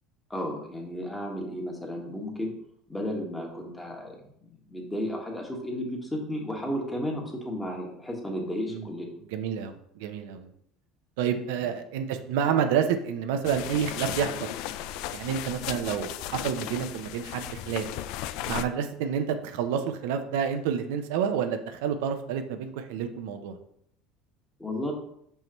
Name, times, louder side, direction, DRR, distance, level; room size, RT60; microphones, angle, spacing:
voice 1, 0.3-2.5 2.9-4.1 4.5-9.1 24.6-24.9, equal, 10° left, 0 dB, 1.6 m, -33 dB
voice 2, 9.3-10.5 11.2-14.5 15.1-17.9 18.5-23.6, right 8 dB, 85° right, 6 dB, 0.7 m, -29 dB
sound 1, 13.4-18.6, left 12 dB, 70° left, 0.3 m, -35 dB
5.7 x 5.5 x 3.1 m, 0.71 s
supercardioid pair, 115°, 0 cm